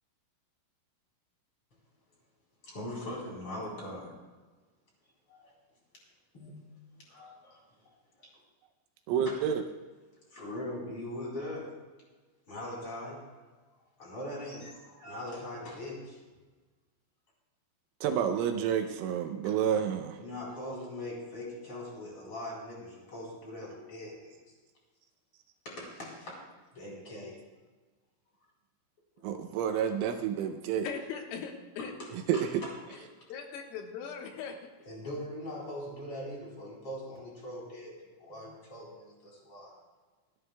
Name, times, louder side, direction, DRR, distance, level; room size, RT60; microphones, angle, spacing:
voice 1, 2.6-4.1 5.3-5.5 6.3-6.5 7.1-7.6 8.2-8.3 9.3-9.4 10.3-11.7 12.5-13.4 14.0-16.2 19.4-19.6 20.1-24.3 25.6-26.4 26.7-27.4 32.0-32.7 34.9-39.7, left 1 dB, 30° left, -4 dB, 4.1 m, -41 dB
voice 2, 9.1-9.6 18.0-20.2 29.2-30.9 32.3-32.6, right 8 dB, 80° right, 6 dB, 3.1 m, -29 dB
voice 3, 30.8-31.9 32.9-34.6, left 6 dB, 80° left, 2 dB, 3.9 m, -40 dB
27.5 x 11.0 x 2.3 m, 1.3 s
omnidirectional pair, 6.0 m